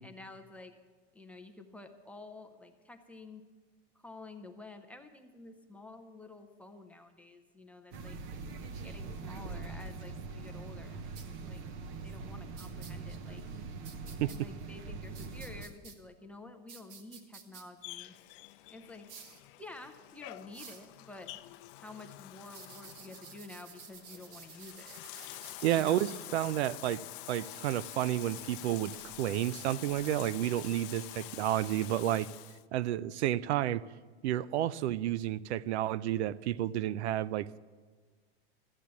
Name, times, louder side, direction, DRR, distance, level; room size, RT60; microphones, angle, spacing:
voice 1, 0.0-0.8 1.1-3.4 4.0-8.2 8.8-11.6 12.0-13.4 14.3-18.1 18.7-19.1 19.6-21.3 21.8-25.0 25.7-26.1, left 2 dB, 5° left, 5 dB, 0.4 m, -50 dB
sound 1, 7.9-15.7, right 4 dB, 40° right, 0.8 m, -43 dB
sound 2, 11.2-11.3 12.6-12.9 13.8-14.4 15.1-16.0 16.7-17.6 19.1-19.4 20.5-20.9 22.5-26.1 27.1-30.4, right 7 dB, 60° right, 1.5 m, -52 dB
Bathtub (filling or washing), 17.8-32.6, left 18 dB, 55° left, 0.5 m, -47 dB
voice 2, 25.6-27.0 27.3-28.9 29.2-32.3 32.7-33.8 34.2-37.6, right 13 dB, 85° right, 20 dB, 0.5 m, -31 dB
13.5 x 8.3 x 7.5 m, 1.5 s
supercardioid pair, 145°, 33 cm